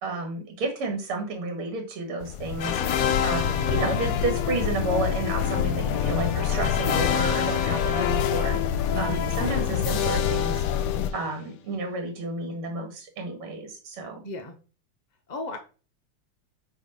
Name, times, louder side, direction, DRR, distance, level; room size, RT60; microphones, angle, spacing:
voice 1, 0.0-2.8 3.2-8.6 9.0-10.7 11.1-14.2, right 3 dB, 90° right, 4 dB, 2.7 m, -31 dB
sound 1, 2.2-11.1, left 8 dB, 85° left, 1.6 m, -28 dB
sound 2, 2.6-11.5, left 9 dB, 70° left, 0.8 m, -29 dB
voice 2, 3.3-3.8 8.9-9.4 14.2-14.5 15.3-15.6, left 1 dB, 45° left, 4 dB, 0.5 m, -35 dB
9.3 x 3.3 x 5.5 m, 0.35 s
omnidirectional pair, 2.4 m